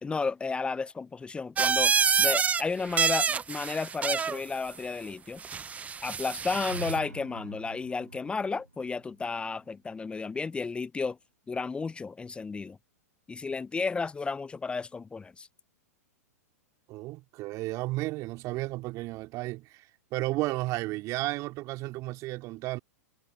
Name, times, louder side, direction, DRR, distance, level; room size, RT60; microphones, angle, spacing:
voice 1, 0.0-5.4 6.0-11.2 11.5-12.8 13.3-15.5, left 4 dB, 10° left, 0.7 m, -33 dB
sound 1, 1.6-2.6 2.9-4.4 5.4-7.0, right 6 dB, 15° right, 0.9 m, -27 dB
sound 2, 6.7-10.5, right 3 dB, 85° right, 1.2 m, -45 dB
voice 2, 16.9-19.9 20.1-22.8, right 19 dB, 40° right, 3.3 m, -33 dB
figure-of-eight pair, 100°, 9 cm